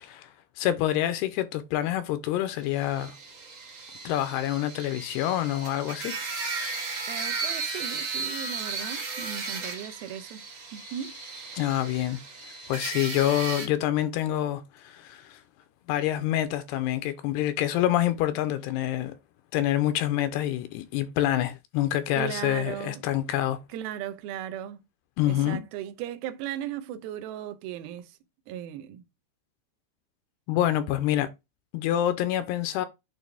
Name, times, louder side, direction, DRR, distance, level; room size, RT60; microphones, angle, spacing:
voice 1, 0.6-3.2 4.1-6.2 11.5-12.2 12.7-15.4 15.9-19.1 19.5-23.6 25.2-25.6 30.5-31.3 31.7-32.9, left 12 dB, 80° left, 2.6 m, -26 dB
sound 1, 2.7-13.7, right 4 dB, 40° right, 1.7 m, -35 dB
voice 2, 7.1-10.4 10.7-11.2 22.1-23.0 23.7-24.8 25.3-28.2 28.5-29.0, right 10 dB, 75° right, 2.5 m, -37 dB
8.9 x 3.3 x 3.4 m
omnidirectional pair, 4.9 m